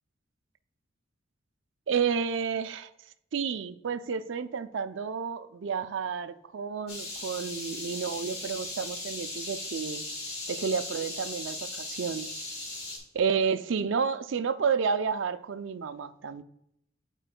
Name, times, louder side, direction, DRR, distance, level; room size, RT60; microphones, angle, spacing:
voice 1, 1.9-2.9 3.3-10.0 10.5-12.3 13.2-16.4, right 6 dB, 70° right, 0.4 m, -30 dB
sound 1, 6.9-13.0, left 2 dB, 50° left, 2.0 m, -38 dB
11.0 x 4.5 x 2.2 m
head